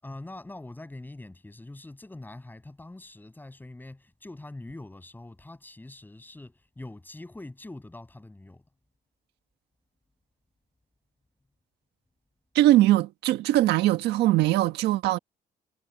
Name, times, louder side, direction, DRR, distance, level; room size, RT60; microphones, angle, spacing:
voice 1, 0.0-8.6, left 2 dB, 10° left, 7.6 m, -44 dB
voice 2, 12.5-15.2, right 15 dB, 80° right, 1.5 m, -21 dB
cardioid pair, 110°, 17 cm